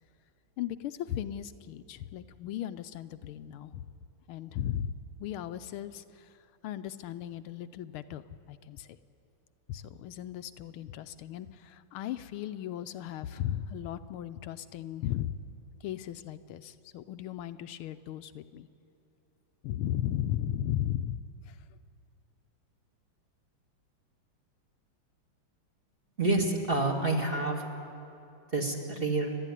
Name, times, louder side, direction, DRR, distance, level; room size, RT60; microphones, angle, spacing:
voice 1, 0.6-3.9 4.3-4.9 5.2-6.3 6.6-9.0 9.7-15.4 15.8-18.7 19.6-21.2 21.5-21.6, left 11 dB, 80° left, 10 dB, 1.5 m, -36 dB
voice 2, 26.2-27.6 28.5-29.4, right 2 dB, 25° right, 2 dB, 2.3 m, -28 dB
29.5 x 12.0 x 9.9 m, 2.8 s
omnidirectional pair, 2.4 m